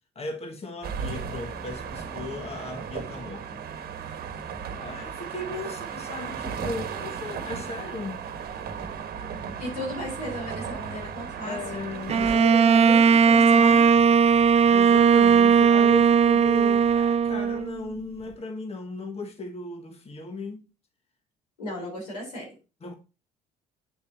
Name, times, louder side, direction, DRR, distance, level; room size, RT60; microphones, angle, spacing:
voice 1, 0.1-3.5 4.8-8.3 11.4-12.4 14.7-20.6 22.8-22.9, left 3 dB, 30° left, 1.6 m, -36 dB
sound 1, 0.8-12.4, right 7 dB, 50° right, 1.3 m, -35 dB
voice 2, 9.6-11.8 12.3-13.9 21.6-22.5, equal, 85° left, 3.7 m, -34 dB
Bowed string instrument, 12.1-17.8, right 6 dB, 30° right, 0.5 m, -18 dB
8.5 x 6.9 x 2.7 m
hypercardioid pair, 55°, 20 cm